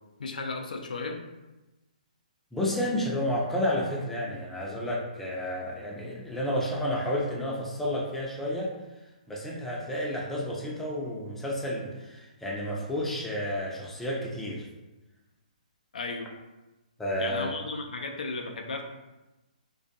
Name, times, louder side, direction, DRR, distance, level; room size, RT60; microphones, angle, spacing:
voice 1, 0.2-1.2 15.9-16.3 17.2-18.8, left 3 dB, 75° left, 3 dB, 0.4 m, -34 dB
voice 2, 2.5-8.7 9.3-14.6 17.0-17.5, left 1 dB, 5° left, -4 dB, 0.4 m, -31 dB
2.4 x 2.2 x 2.6 m, 1.0 s
hypercardioid pair, 135°, 4 cm